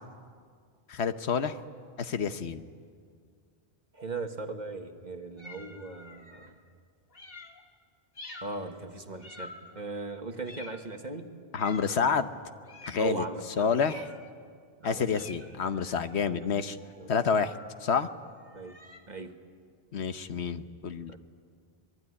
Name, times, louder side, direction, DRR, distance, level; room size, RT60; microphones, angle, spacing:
voice 1, 0.9-1.6 2.0-2.6 11.5-12.3 12.8-13.2 13.6-14.1 14.8-16.8 17.1-17.5 17.8-18.1 19.9-21.1, left 6 dB, 85° left, 10 dB, 1.3 m, -28 dB
voice 2, 3.9-6.6 8.4-11.3 13.0-13.8 14.8-15.2 16.3-16.4 17.0-17.1 18.5-18.7 19.1-19.4 21.1-21.2, right 3 dB, 45° right, 6 dB, 1.7 m, -38 dB
sound 1, 5.4-6.5 7.1-7.6 8.1-8.6 9.2-9.9 10.4-11.0 11.6-12.0 12.6-13.1 13.8-14.3 15.1-19.0, left 2 dB, 60° left, 2.5 m, -48 dB
26.0 x 22.0 x 9.8 m, 2.1 s
omnidirectional pair, 1.1 m